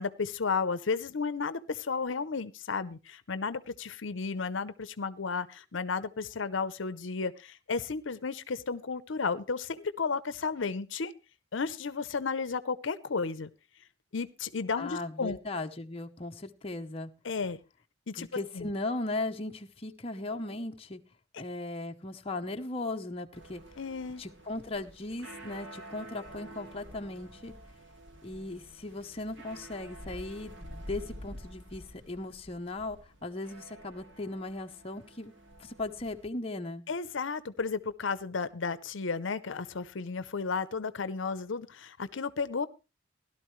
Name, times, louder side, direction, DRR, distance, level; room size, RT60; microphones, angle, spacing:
voice 1, 0.0-11.1 11.5-13.5 14.1-15.4 17.2-17.6 18.1-18.3 18.5-18.7 23.8-24.2 36.9-42.7, left 4 dB, 75° left, 14 dB, 0.7 m, -33 dB
voice 2, 14.7-17.1 18.2-21.0 21.4-23.6 24.2-27.5 28.2-35.3 35.6-36.8, left 2 dB, 30° left, 4 dB, 0.8 m, -37 dB
sound 1, 23.3-36.3, right 1 dB, 70° right, 2.3 m, -49 dB
17.0 x 12.0 x 3.2 m, 0.28 s
head